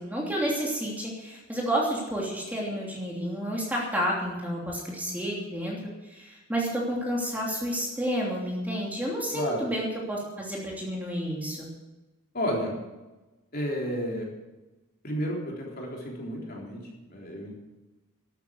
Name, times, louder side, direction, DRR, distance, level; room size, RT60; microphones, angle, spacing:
voice 1, 0.0-11.7, equal, 5° right, -3 dB, 3.0 m, -30 dB
voice 2, 9.3-9.6 12.3-12.8 13.5-14.3 15.0-17.5, equal, 40° left, -2 dB, 3.7 m, -31 dB
12.5 x 9.4 x 8.3 m, 1.1 s
head